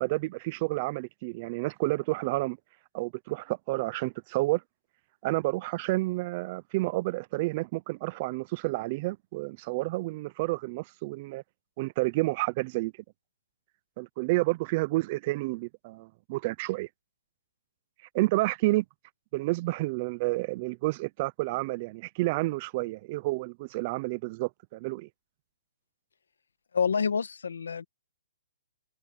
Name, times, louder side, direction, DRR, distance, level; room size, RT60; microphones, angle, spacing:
voice 1, 0.0-2.6 2.9-4.6 5.2-11.4 11.8-12.9 14.0-16.9 18.1-18.8 19.3-25.1, right 21 dB, 30° right, 0.6 m, -30 dB
voice 2, 26.7-27.8, left 6 dB, 90° left, 1.4 m, -27 dB
hypercardioid pair, 160°, 0 cm